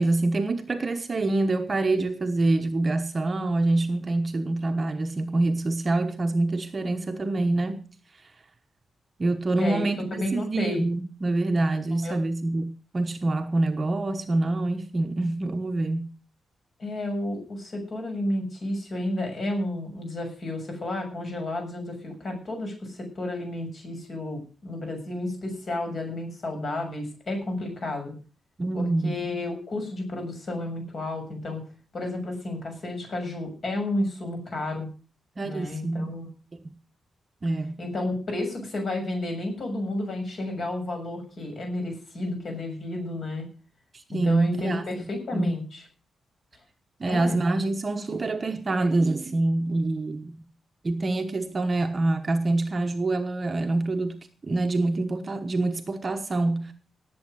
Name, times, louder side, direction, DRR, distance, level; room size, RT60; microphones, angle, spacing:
voice 1, 0.0-7.8 9.2-16.1 28.6-29.2 35.4-36.1 37.4-37.8 44.1-44.8 45.3-45.6 47.0-50.3 50.8-56.7, right 2 dB, 25° right, 1.2 m, -26 dB
voice 2, 10.1-10.8 12.0-12.2 16.8-28.1 28.7-31.6 31.9-34.9 35.4-36.3 37.8-43.5 44.1-45.8 47.0-47.4, left 1 dB, 40° left, 6.8 m, -31 dB
18.5 x 7.9 x 6.4 m
wide cardioid pair, 175°, 0 cm